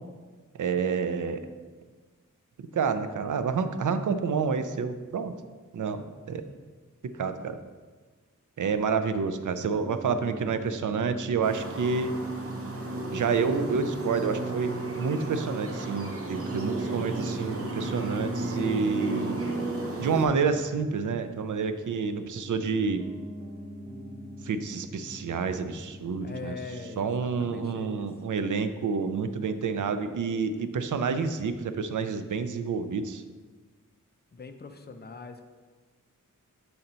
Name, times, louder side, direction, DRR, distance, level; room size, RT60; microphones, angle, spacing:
voice 1, 0.6-1.4 2.7-5.3 5.7-6.5 7.1-7.6 8.6-12.2 13.1-19.4 20.0-23.0 24.4-26.6 27.0-33.2, right 5 dB, 70° right, 10 dB, 0.4 m, -29 dB
Piano, 9.3-28.7, equal, 10° right, 0.8 m, -44 dB
sound 1, 11.4-20.3, right 2 dB, 45° right, 0.8 m, -33 dB
voice 2, 26.2-28.1 34.3-35.5, left 4 dB, 30° left, 7 dB, 0.4 m, -42 dB
5.7 x 3.9 x 4.2 m, 1.4 s
wide cardioid pair, 95°, 32 cm